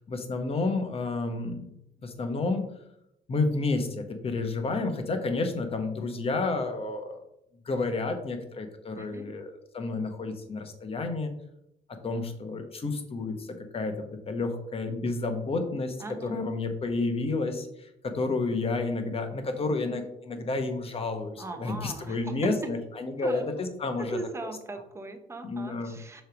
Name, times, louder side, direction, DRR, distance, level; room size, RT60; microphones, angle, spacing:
voice 1, 0.1-1.7 2.0-2.8 3.3-7.2 7.6-11.3 12.0-24.5 25.4-26.0, left 3 dB, 35° left, 6 dB, 1.1 m, -30 dB
voice 2, 8.9-9.3 16.0-16.4 21.4-22.7 23.2-23.5 24.0-26.2, right 3 dB, 15° right, 7 dB, 0.8 m, -38 dB
6.4 x 3.3 x 5.0 m, 0.79 s
cardioid pair, 110°, 17 cm